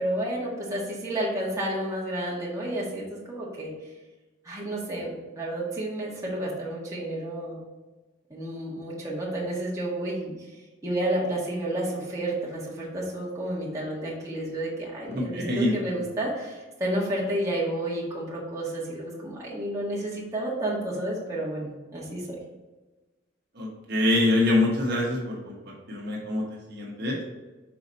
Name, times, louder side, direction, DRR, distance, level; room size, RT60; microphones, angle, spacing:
voice 1, 0.0-3.7 4.4-7.6 8.3-10.3 10.8-22.4, right 1 dB, 15° right, -5 dB, 1.7 m, -31 dB
voice 2, 15.1-15.9 23.5-26.4 26.7-27.2, left 2 dB, 60° right, -3 dB, 1.2 m, -25 dB
5.9 x 4.1 x 4.0 m, 1.2 s
head